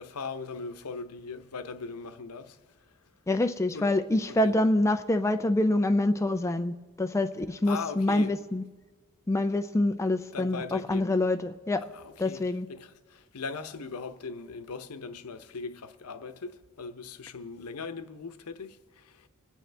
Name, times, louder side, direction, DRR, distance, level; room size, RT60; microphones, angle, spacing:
voice 1, 0.0-2.6 3.7-3.9 4.3-4.5 7.7-8.3 10.3-11.1 11.9-19.3, left 4 dB, 90° left, 0.8 m, -39 dB
voice 2, 3.3-8.6 9.3-11.8 12.2-12.7, left 1 dB, 15° left, 0.4 m, -26 dB
26.0 x 9.2 x 3.4 m
head